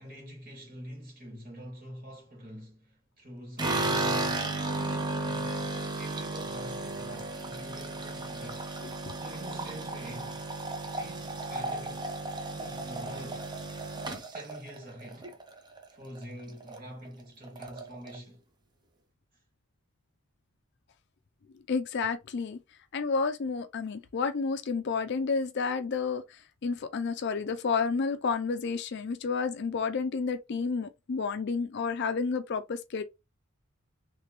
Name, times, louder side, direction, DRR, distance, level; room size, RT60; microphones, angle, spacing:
voice 1, 0.0-8.7 9.1-10.4 11.0-12.1 12.5-13.5 14.3-15.3 15.9-18.4, equal, 45° right, 2.1 m, -45 dB
sound 1, 3.6-15.8 16.2-16.8 17.0-17.1 17.4-18.2, right 2 dB, 20° right, 0.6 m, -34 dB
voice 2, 21.7-22.6 22.9-33.0, left 5 dB, 55° left, 0.4 m, -30 dB
3.3 x 3.3 x 2.9 m
head